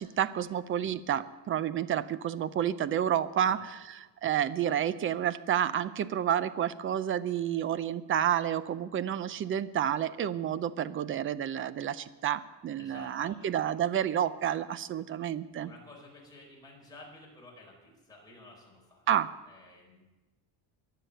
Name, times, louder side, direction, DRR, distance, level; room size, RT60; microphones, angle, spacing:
voice 1, 0.0-4.0 4.2-15.7 19.1-19.3, right 10 dB, 30° right, 16 dB, 0.5 m, -30 dB
voice 2, 3.4-3.8 12.8-13.5 15.4-19.1 19.5-20.0, left 2 dB, 10° left, -3 dB, 4.7 m, -53 dB
22.5 x 7.7 x 6.6 m, 1.1 s
cardioid pair, 160°, 45 cm